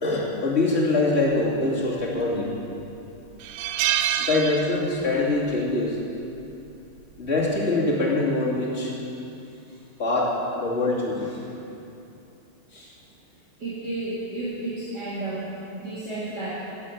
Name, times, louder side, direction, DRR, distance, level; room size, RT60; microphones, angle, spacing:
voice 1, 0.0-2.5 4.2-6.0 7.2-8.9 10.0-11.3 12.7-12.9, left 2 dB, 30° left, -5 dB, 2.8 m, -24 dB
sound 1, 2.0-2.5 2.9-3.0 3.4-5.2 5.5-5.7 7.0-7.3, right 11 dB, 85° right, 1.5 m, -27 dB
voice 2, 9.4-9.8 13.6-16.5, right 2 dB, 50° right, -10 dB, 3.0 m, -32 dB
12.5 x 9.8 x 7.8 m, 2.8 s
omnidirectional pair, 2.4 m